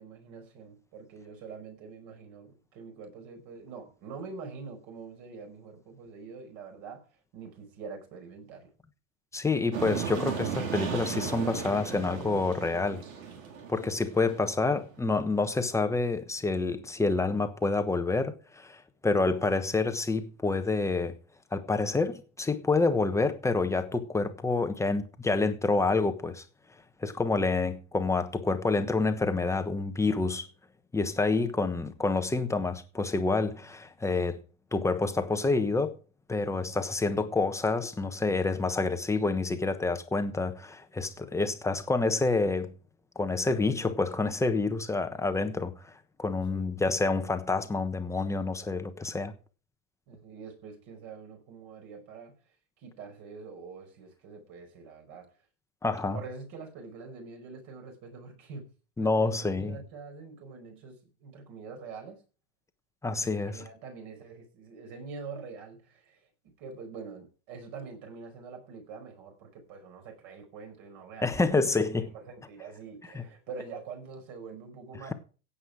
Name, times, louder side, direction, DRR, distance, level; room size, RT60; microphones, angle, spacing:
voice 1, 0.0-7.1 7.3-8.7 46.5-46.7 50.1-52.4 52.8-55.3 56.0-58.7 59.0-62.2 63.2-66.2 66.6-71.5 71.9-75.1, right 5 dB, 45° right, 5.4 m, -45 dB
voice 2, 9.3-13.0 13.7-21.2 21.5-26.4 27.0-30.5 30.9-34.4 34.7-36.0 36.3-42.7 43.1-45.7 46.2-49.3 55.8-56.2 59.0-59.8 63.0-63.6 71.2-72.1 73.1-73.2, left 3 dB, 5° left, 1.1 m, -28 dB
sound 1, 9.7-14.8, right 7 dB, 75° right, 4.0 m, -35 dB
15.5 x 8.4 x 4.9 m
hypercardioid pair, 130°, 42 cm